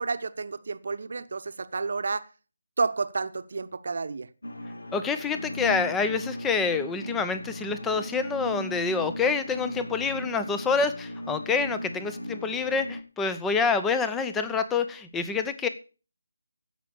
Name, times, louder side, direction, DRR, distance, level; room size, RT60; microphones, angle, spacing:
voice 1, 0.0-2.2 2.8-4.3, right 4 dB, 50° right, 1.0 m, -30 dB
sound 1, 4.4-13.0, equal, 70° left, 1.6 m, -37 dB
voice 2, 4.9-15.7, left 5 dB, 5° left, 0.8 m, -27 dB
16.0 x 6.0 x 6.9 m
figure-of-eight pair, 155°, 0 cm